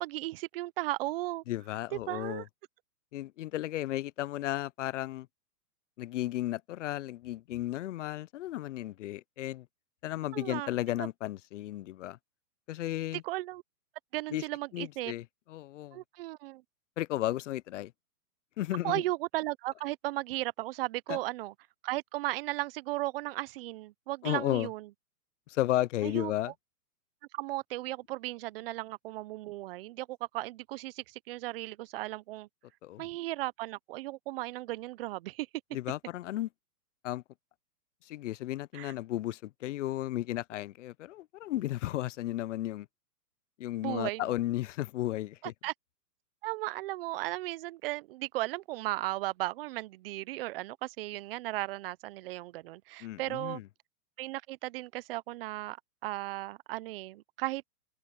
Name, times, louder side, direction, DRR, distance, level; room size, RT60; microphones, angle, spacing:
voice 1, 0.0-1.4 1.9-2.4 10.3-10.7 11.0-11.1 13.2-13.6 14.1-15.1 15.9-16.6 18.8-21.5 21.8-24.9 26.0-26.3 27.3-32.5 33.0-35.5 38.7-38.9 43.8-44.4 45.6-45.7 46.4-53.6 54.2-55.8 56.0-57.6, right 18 dB, 40° right, 0.7 m, -36 dB
voice 2, 1.5-2.4 3.1-5.3 6.0-9.7 10.0-12.2 12.7-13.2 14.3-14.4 14.7-16.0 17.0-17.9 18.6-19.0 21.1-21.2 24.2-24.7 25.5-26.5 32.8-33.1 35.7-36.5 37.0-37.2 38.1-42.9 43.6-45.5 53.0-53.7, left 15 dB, 50° left, 0.5 m, -34 dB
hypercardioid pair, 140°, 48 cm